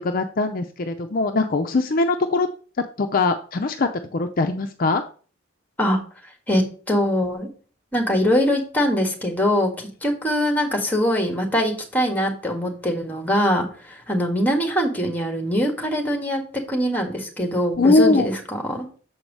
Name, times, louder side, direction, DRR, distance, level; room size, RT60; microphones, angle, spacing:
voice 1, 0.0-2.5 3.0-5.0 17.8-18.3, left 3 dB, 45° left, 6 dB, 0.5 m, -21 dB
voice 2, 6.5-7.5 7.9-16.4 16.7-18.8, equal, 10° left, 3 dB, 1.6 m, -22 dB
7.1 x 4.6 x 5.4 m, 0.40 s
head